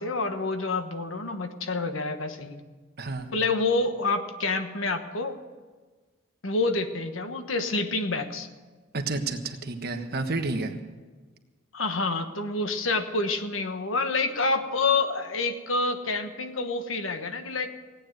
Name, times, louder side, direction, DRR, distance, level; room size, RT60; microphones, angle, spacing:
voice 1, 0.0-2.6 3.3-5.4 6.4-8.5 11.7-17.7, left 3 dB, 75° left, 8 dB, 1.3 m, -28 dB
voice 2, 3.0-3.3 8.9-10.7, right 3 dB, 50° right, 5 dB, 1.4 m, -30 dB
17.5 x 9.5 x 8.0 m, 1.3 s
head